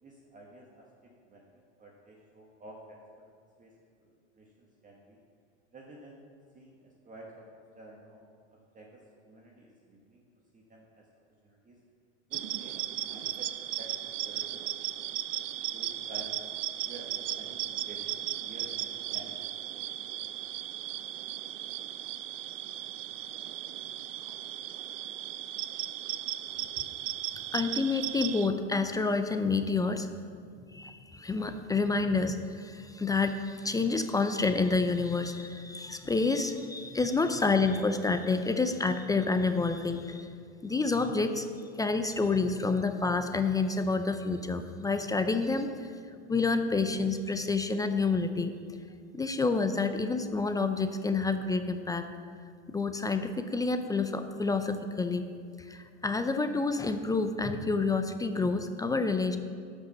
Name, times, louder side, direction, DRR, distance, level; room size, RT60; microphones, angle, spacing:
voice 1, 0.0-1.4 1.8-3.2 3.6-3.7 4.0-4.1 4.3-5.2 5.7-6.2 6.5-8.2 8.5-10.2 10.5-11.0 11.4-11.8 12.3-13.5 13.8-14.6 15.7-16.3 16.8-19.4 19.7-19.8 20.1-20.3 20.5-20.7, right 1 dB, 20° right, -2 dB, 1.4 m, -51 dB
sound 1, 12.3-28.5, right 13 dB, 80° right, 0.6 m, -36 dB
voice 2, 27.5-30.1 30.7-40.3 40.6-41.5 41.8-45.9 46.3-48.5 49.1-52.1 52.7-55.3 55.6-59.4, left 3 dB, 10° left, 8 dB, 0.4 m, -28 dB
11.5 x 5.3 x 7.1 m, 2.2 s
hypercardioid pair, 100°, 36 cm